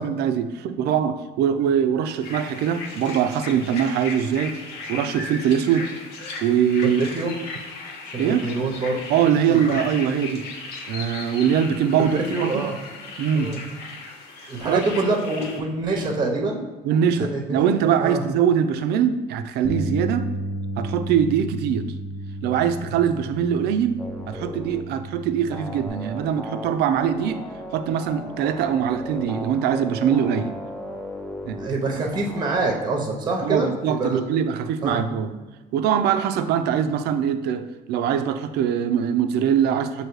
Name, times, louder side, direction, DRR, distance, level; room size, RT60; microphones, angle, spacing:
voice 1, 0.0-4.6 4.9-5.9 6.4-7.0 8.2-8.5 9.1-10.5 10.9-12.7 13.2-13.5 14.4-14.8 16.8-20.3 20.8-21.9 22.4-27.4 27.7-30.5 31.4-31.6 33.4-35.3 35.7-40.1, right 8 dB, 75° right, 9 dB, 0.4 m, -22 dB
sound 1, 2.2-15.6, left 3 dB, 85° left, 0.8 m, -37 dB
voice 2, 6.8-7.3 8.1-9.0 9.5-9.6 12.0-12.7 13.3-13.6 14.5-16.6 17.2-17.6 18.0-18.2 31.6-34.2 34.8-35.0, right 3 dB, 25° right, 1 dB, 0.7 m, -25 dB
Bass guitar, 19.6-25.9, equal, 40° left, 0.8 m, -33 dB
sound 2, 24.0-24.8 25.5-31.7 32.1-32.8, left 1 dB, 5° left, 0.4 m, -36 dB
6.3 x 2.7 x 3.1 m, 1.2 s
cardioid pair, 110°, 17 cm